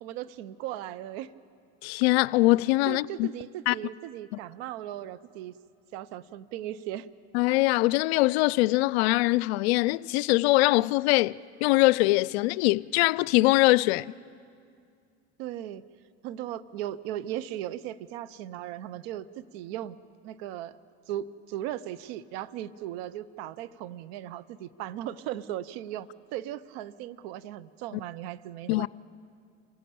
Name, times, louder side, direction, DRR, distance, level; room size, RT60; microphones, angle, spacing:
voice 1, 0.0-1.3 2.9-5.6 5.9-7.1 15.4-15.8 16.2-20.0 20.2-20.8 21.1-28.9, right 12 dB, 75° right, 0.8 m, -37 dB
voice 2, 1.8-3.3 3.7-3.8 7.3-14.1 28.7-28.9, left 21 dB, 80° left, 0.5 m, -23 dB
26.5 x 16.0 x 8.5 m
supercardioid pair, 85°, 31 cm